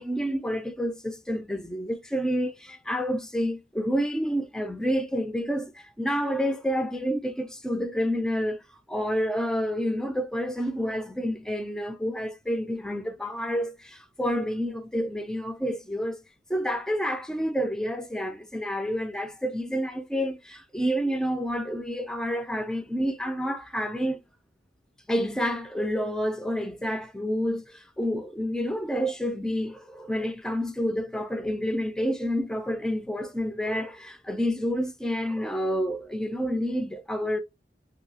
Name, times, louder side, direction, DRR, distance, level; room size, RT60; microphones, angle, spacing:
voice 1, 0.0-8.6 8.9-16.2 16.5-24.2 25.1-37.4, equal, 5° left, 0.3 m, -29 dB
2.8 x 2.7 x 2.7 m
head